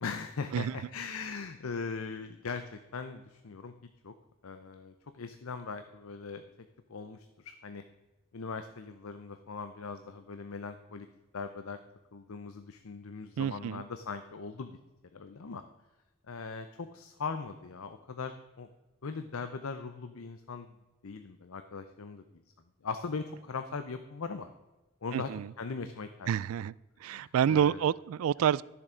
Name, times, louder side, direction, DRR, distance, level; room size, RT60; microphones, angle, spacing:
voice 1, 0.0-3.7 4.0-4.1 4.4-6.4 6.9-7.8 8.3-11.1 11.3-11.8 12.1-14.8 15.1-15.6 16.3-18.7 19.0-20.7 21.0-22.2 22.8-24.5 25.0-25.3 25.6-26.3 27.1-27.8, left 4 dB, 80° left, 9 dB, 0.6 m, -40 dB
voice 2, 13.4-13.8 25.1-25.5 26.3-26.7 27.0-28.6, right 9 dB, 80° right, 23 dB, 0.3 m, -28 dB
12.5 x 7.1 x 5.0 m, 1.1 s
head